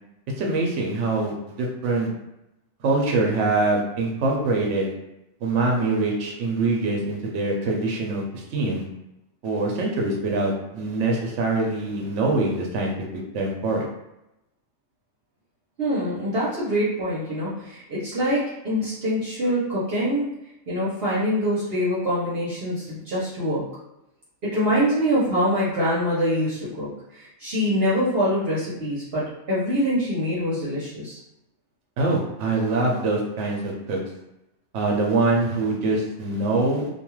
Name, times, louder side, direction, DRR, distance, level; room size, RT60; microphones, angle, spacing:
voice 1, 0.4-2.1 2.8-4.9 5.4-8.8 9.4-12.9 13.3-13.9 32.0-34.0 34.7-36.9, right 2 dB, 80° right, -1 dB, 0.9 m, -24 dB
voice 2, 15.8-20.3 20.7-23.6 24.4-31.2, equal, 60° right, -8 dB, 0.9 m, -24 dB
2.6 x 2.3 x 3.0 m, 0.89 s
omnidirectional pair, 1.2 m